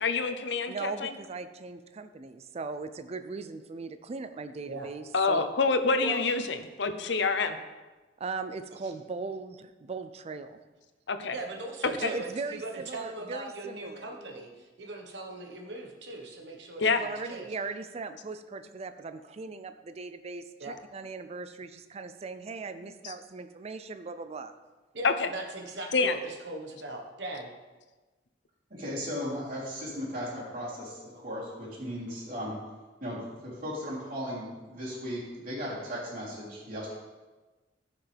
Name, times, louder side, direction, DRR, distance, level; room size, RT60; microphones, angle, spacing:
voice 1, 0.0-1.1 5.1-7.6 11.1-11.3 12.0-12.1 16.8-17.0 23.0-23.1 25.0-25.3 25.9-26.2, left 4 dB, 70° left, 8 dB, 0.7 m, -27 dB
voice 2, 0.7-5.5 8.2-10.6 12.0-14.1 17.0-24.5, right 4 dB, 35° right, 10 dB, 0.4 m, -39 dB
voice 3, 11.3-17.5 20.6-20.8 24.9-27.5, right 2 dB, 70° right, 2 dB, 1.3 m, -39 dB
voice 4, 28.7-32.6 33.0-36.9, equal, 50° right, -6 dB, 3.4 m, -36 dB
14.0 x 5.9 x 3.4 m, 1.2 s
head